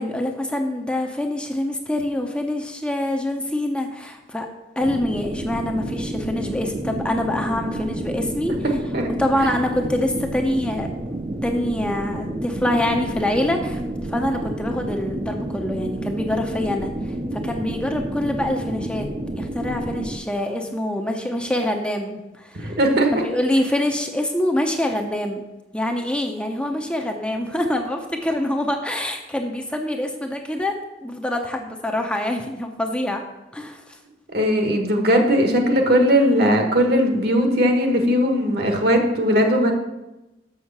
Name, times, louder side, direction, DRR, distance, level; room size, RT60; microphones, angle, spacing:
voice 1, 0.0-4.5 4.8-8.6 9.2-10.9 11.4-13.8 14.1-19.1 19.3-22.8 23.1-25.4 25.7-30.7 31.0-33.2 33.5-33.8, left 1 dB, 5° left, 3 dB, 0.7 m, -25 dB
sound 1, 4.8-20.2, right 1 dB, 30° right, 0.6 m, -30 dB
voice 2, 22.5-23.1 34.3-39.7, equal, 60° right, 4 dB, 1.5 m, -19 dB
6.4 x 6.3 x 7.3 m, 1.0 s
head